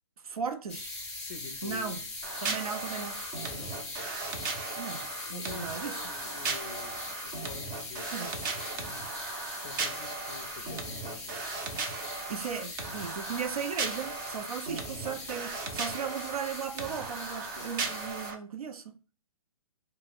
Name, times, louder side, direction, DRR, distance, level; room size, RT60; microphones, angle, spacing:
voice 1, 0.2-0.9 1.6-2.0 2.4-3.2 4.8-6.0 8.1-8.3 12.3-19.0, right 6 dB, 80° right, 0.5 m, -37 dB
sound 1, 0.7-18.3, left 3 dB, 5° left, 0.7 m, -41 dB
voice 2, 1.2-2.1 3.5-3.8 5.2-8.9 9.6-11.3, left 7 dB, 40° left, 0.4 m, -47 dB
sound 2, 2.2-18.3, right 4 dB, 35° right, 0.6 m, -37 dB
2.3 x 2.2 x 3.3 m
hypercardioid pair, 130°, 19 cm